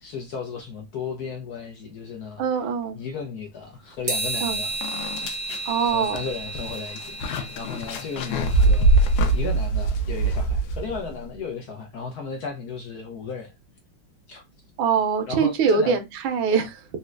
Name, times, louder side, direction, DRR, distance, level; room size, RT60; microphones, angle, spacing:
voice 1, 0.0-2.4 2.9-4.8 5.9-8.9 9.3-13.5 14.3-14.4 15.3-16.0, left 5 dB, 65° left, 1.0 m, -34 dB
voice 2, 2.4-3.0 4.4-4.6 5.7-6.2 14.8-16.9, right 6 dB, 85° right, 1.5 m, -23 dB
sound 1, 4.1-9.4, right 3 dB, 45° right, 1.3 m, -33 dB
sound 2, 4.3-4.4 4.8-11.2, right 2 dB, 85° left, 1.4 m, -23 dB
4.1 x 2.2 x 2.4 m
omnidirectional pair, 2.1 m